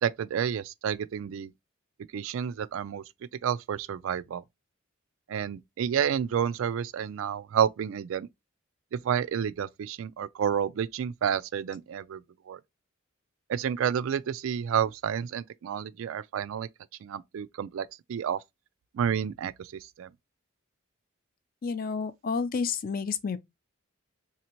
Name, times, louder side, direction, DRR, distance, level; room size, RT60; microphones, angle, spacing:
voice 1, 0.0-1.5 2.1-3.0 3.4-4.4 5.3-8.3 8.9-12.6 13.5-16.7 17.0-18.4 18.9-19.7 20.0-20.1, right 8 dB, 65° right, 0.3 m, -30 dB
voice 2, 21.6-23.4, left 5 dB, 40° left, 0.4 m, -30 dB
3.3 x 2.8 x 2.8 m
head